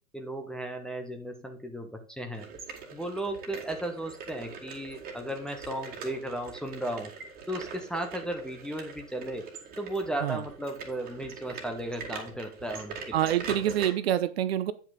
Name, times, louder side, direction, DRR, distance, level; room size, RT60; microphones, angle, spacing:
voice 1, 0.1-2.5 2.9-7.1 7.5-9.5 9.8-13.2, right 1 dB, ahead, 0.7 m, -35 dB
sound 1, 2.3-13.9, right 5 dB, 20° right, 1.9 m, -43 dB
voice 2, 13.1-14.7, right 11 dB, 50° right, 0.7 m, -26 dB
9.1 x 5.6 x 3.8 m
hypercardioid pair, 120°, 41 cm